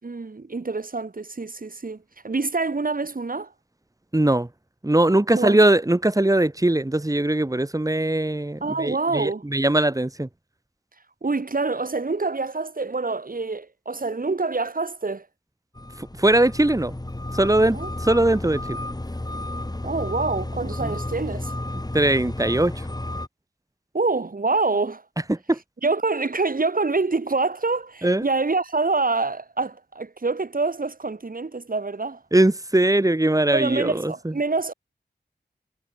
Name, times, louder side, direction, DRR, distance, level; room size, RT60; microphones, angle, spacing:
voice 1, 0.0-3.5 5.3-5.6 8.6-9.4 11.2-15.3 17.7-17.9 19.8-21.5 23.9-25.0 25.8-32.2 33.5-34.7, right 3 dB, 50° right, 5.9 m, -26 dB
voice 2, 4.1-4.5 4.8-10.3 16.0-16.9 17.3-18.8 20.8-20.9 21.9-22.7 25.3-25.6 28.0-28.2 32.3-34.1, right 1 dB, 20° right, 4.7 m, -20 dB
sound 1, 15.8-23.3, left 1 dB, 20° left, 7.6 m, -32 dB
wide cardioid pair, 85°, 18 cm